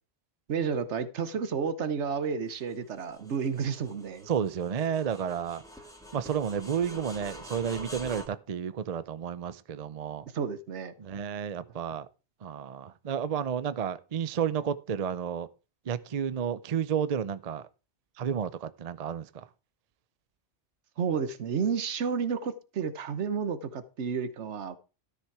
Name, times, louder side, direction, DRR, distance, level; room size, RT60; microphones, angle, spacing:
voice 1, 0.5-4.3 10.3-10.9 21.0-24.8, right 6 dB, 75° right, 1.3 m, -31 dB
sound 1, 2.6-8.3, equal, 5° left, 1.9 m, -46 dB
voice 2, 4.3-5.6 6.1-10.3 11.0-12.1 12.4-15.5 15.9-17.7 18.2-19.4, right 8 dB, 45° right, 0.6 m, -31 dB
13.0 x 6.7 x 4.7 m
omnidirectional pair, 1.2 m